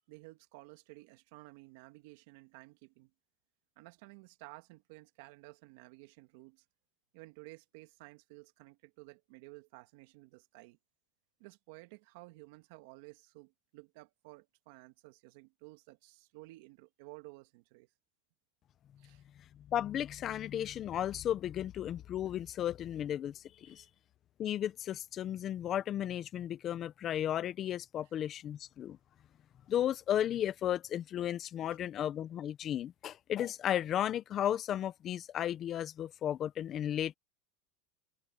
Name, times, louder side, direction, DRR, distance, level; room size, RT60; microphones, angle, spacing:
voice 1, 0.1-3.1 3.8-6.6 7.1-10.8 11.4-17.9 19.0-19.2 23.7-23.9 31.6-31.8, right 22 dB, 70° right, 2.1 m, -54 dB
voice 2, 19.7-23.8 24.4-29.0 29.7-37.1, left 11 dB, 35° left, 1.2 m, -34 dB
supercardioid pair, 125°, 0 cm